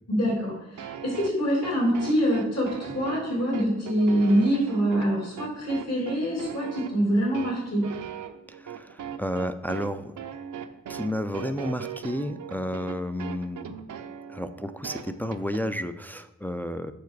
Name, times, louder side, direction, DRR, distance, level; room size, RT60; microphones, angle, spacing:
voice 1, 0.1-7.9, equal, 60° left, -2 dB, 2.8 m, -25 dB
sound 1, 0.8-15.6, right 8 dB, 85° right, 0.6 m, -38 dB
voice 2, 8.6-10.1 10.9-13.8 14.3-16.9, equal, 5° left, 8 dB, 0.3 m, -31 dB
7.1 x 5.7 x 4.6 m, 0.95 s
wide cardioid pair, 125°, 30 cm